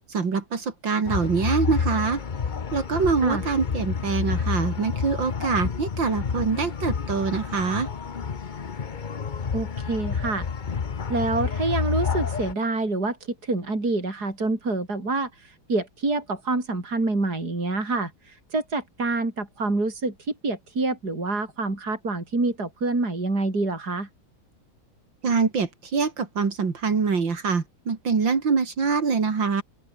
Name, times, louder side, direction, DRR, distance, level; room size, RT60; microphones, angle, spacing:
voice 1, 0.1-2.2 2.7-7.9 25.2-29.6, right 5 dB, 65° right, 3.4 m, -24 dB
sound 1, 1.1-12.5, left 6 dB, 45° left, 0.6 m, -29 dB
voice 2, 9.5-10.5 11.1-24.1, right 2 dB, 50° right, 6.1 m, -27 dB
open air
omnidirectional pair, 2.2 m